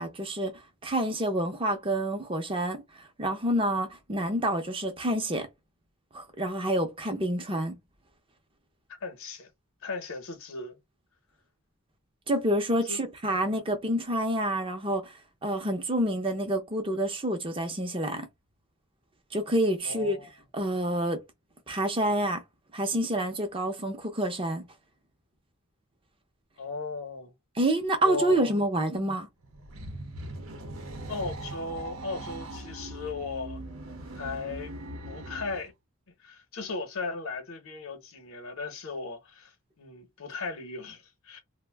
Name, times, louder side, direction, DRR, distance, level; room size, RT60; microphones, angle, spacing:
voice 1, 0.0-2.8 3.2-5.5 6.1-7.8 12.3-15.1 15.4-18.3 19.3-20.2 20.5-21.2 21.7-22.4 22.7-24.6 27.6-29.3, right 1 dB, 25° right, 0.6 m, -28 dB
voice 2, 9.0-9.5 9.8-10.8 12.9-13.0 19.8-20.3 26.6-27.3 28.0-28.4 31.1-33.6 34.1-34.7 35.1-35.7 36.2-41.4, left 4 dB, 70° left, 0.8 m, -37 dB
sound 1, 29.4-35.7, right 1 dB, 75° right, 0.7 m, -40 dB
2.5 x 2.1 x 3.3 m
head